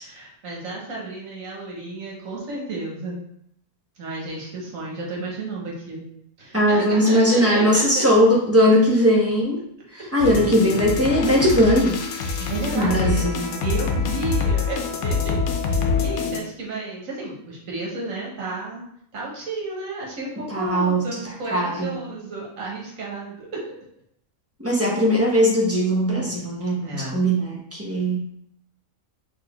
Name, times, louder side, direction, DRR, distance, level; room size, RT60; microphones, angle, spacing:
voice 1, 0.0-3.3 4.0-6.1 6.4-8.0 12.4-18.8 19.1-23.7 26.8-27.2, right 2 dB, 70° right, -3 dB, 1.7 m, -32 dB
voice 2, 6.5-9.6 9.9-12.0 12.7-13.5 20.5-21.1 21.5-22.0 24.6-28.2, equal, 10° right, -4 dB, 0.8 m, -19 dB
sound 1, 10.2-16.4, left 5 dB, 90° left, 1.1 m, -25 dB
4.1 x 3.3 x 3.5 m, 0.74 s
omnidirectional pair, 1.5 m